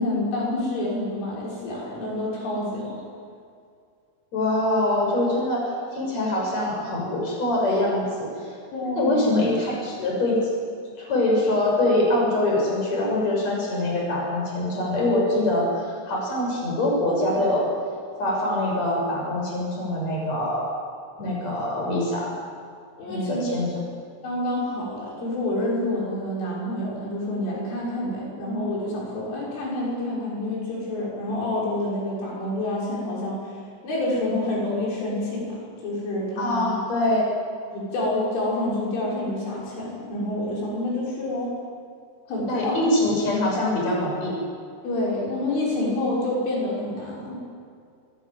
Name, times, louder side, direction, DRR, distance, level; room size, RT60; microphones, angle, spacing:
voice 1, 0.0-3.0 8.7-9.3 23.0-23.5 24.2-33.6 33.8-35.6 35.8-36.7 37.7-41.5 42.3-42.8 44.8-47.4, left 1 dB, 75° left, -4 dB, 8.6 m, -28 dB
voice 2, 4.3-8.5 8.9-10.5 11.0-17.7 18.2-20.7 21.2-22.3 23.1-23.7 36.4-37.3 42.5-44.4, left 1 dB, 35° left, -2 dB, 7.5 m, -24 dB
25.5 x 20.5 x 9.2 m, 2.3 s
omnidirectional pair, 5.6 m